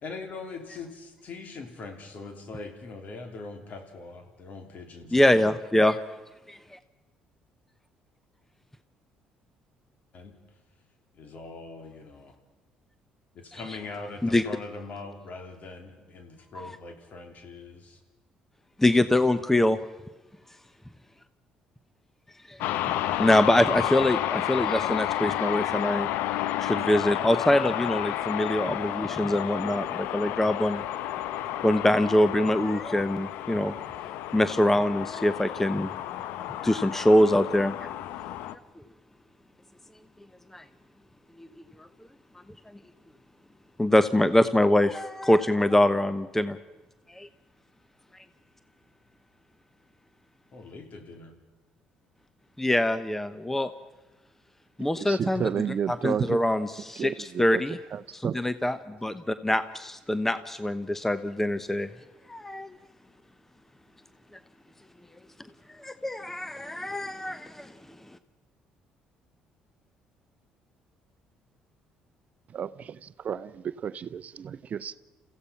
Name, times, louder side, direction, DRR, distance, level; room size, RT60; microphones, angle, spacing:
voice 1, 0.0-5.5 10.1-10.3 11.1-12.4 13.3-18.0 50.5-51.3, left 3 dB, 55° left, 5 dB, 3.3 m, -42 dB
voice 2, 5.1-6.0 6.5-6.6 13.5-13.6 14.2-14.4 16.6-16.7 18.8-19.8 22.5-22.6 22.8-26.1 26.6-30.8 31.6-33.7 34.3-35.9 36.4-37.7 40.5-40.6 43.8-46.6 47.1-47.3 52.6-53.7 54.8-55.4 55.9-57.8 58.1-61.9 62.3-62.7 65.8-67.7, left 1 dB, 10° left, 13 dB, 0.9 m, -24 dB
sound 1, 22.6-38.6, left 12 dB, 75° left, 0.7 m, -31 dB
voice 3, 55.0-56.4 57.0-57.6 57.9-58.3 72.5-75.0, right 8 dB, 50° right, 15 dB, 0.6 m, -32 dB
29.0 x 16.0 x 5.8 m, 1.2 s
hypercardioid pair, 60°, 3 cm